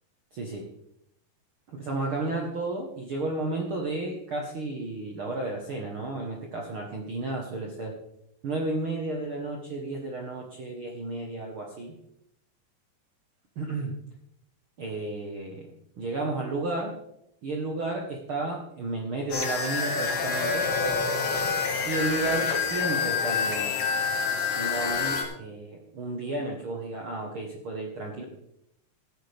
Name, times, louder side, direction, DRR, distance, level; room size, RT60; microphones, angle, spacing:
voice 1, 0.3-0.6 1.7-7.9 8.4-11.9 13.6-13.9 14.8-15.7 16.0-16.9 17.4-20.6 21.8-23.7 24.6-28.2, right 2 dB, 70° right, 0 dB, 1.2 m, -32 dB
sound 1, 19.3-25.2, left 5 dB, 85° left, 3.9 m, -27 dB
16.0 x 9.9 x 3.5 m, 0.78 s
omnidirectional pair, 4.4 m